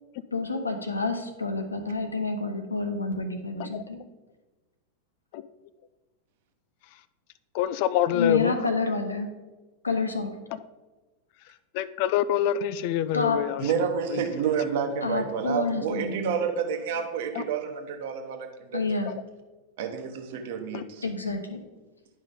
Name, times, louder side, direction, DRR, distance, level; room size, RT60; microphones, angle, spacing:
voice 1, 0.3-4.0 8.1-9.3 9.8-10.3 13.1-13.4 15.0-16.4 18.7-19.1 21.0-21.6, left 3 dB, 80° left, 7 dB, 1.0 m, -28 dB
voice 2, 7.5-8.5 11.7-14.2 17.4-17.5 20.7-20.8, left 11 dB, 45° left, 16 dB, 0.4 m, -26 dB
voice 3, 13.6-18.8 19.8-21.0, right 7 dB, 55° right, 6 dB, 1.1 m, -29 dB
11.0 x 5.4 x 3.8 m, 1.2 s
figure-of-eight pair, 90°, 0 cm